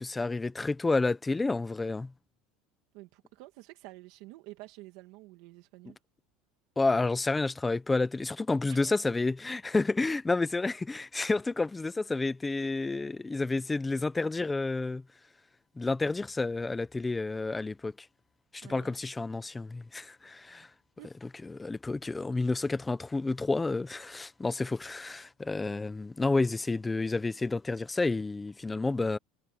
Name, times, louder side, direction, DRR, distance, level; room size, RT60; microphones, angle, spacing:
voice 1, 0.0-2.1 6.8-15.0 15.8-17.9 18.5-20.7 21.4-29.2, left 3 dB, 10° left, 0.7 m, -30 dB
voice 2, 2.9-6.0 8.7-9.0 18.6-18.9 21.0-21.1, right 19 dB, 60° right, 1.8 m, -49 dB
cardioid pair, 165°, 0 cm